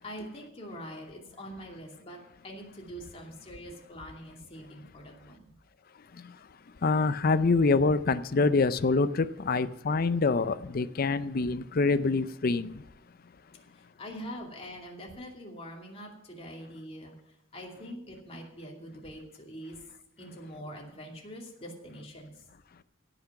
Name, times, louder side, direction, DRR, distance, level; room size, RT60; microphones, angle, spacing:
voice 1, 0.0-2.2 2.4-5.5 13.8-17.1 17.5-19.8 20.2-22.4, equal, 30° left, 2.5 m, -44 dB
voice 2, 6.8-12.7, left 3 dB, 45° left, 0.5 m, -25 dB
16.5 x 5.9 x 5.8 m
head